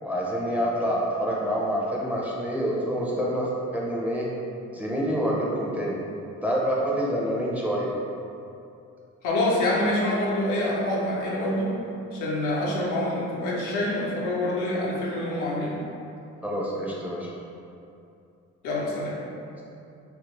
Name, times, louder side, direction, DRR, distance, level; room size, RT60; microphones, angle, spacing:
voice 1, 0.0-4.3 4.7-6.0 6.4-7.9 16.4-17.3, equal, 5° right, -5 dB, 0.5 m, -27 dB
voice 2, 9.2-11.7 12.1-15.8 18.6-19.1, left 1 dB, 85° left, -5 dB, 0.7 m, -26 dB
2.7 x 2.5 x 3.0 m, 2.6 s
cardioid pair, 90°, 30 cm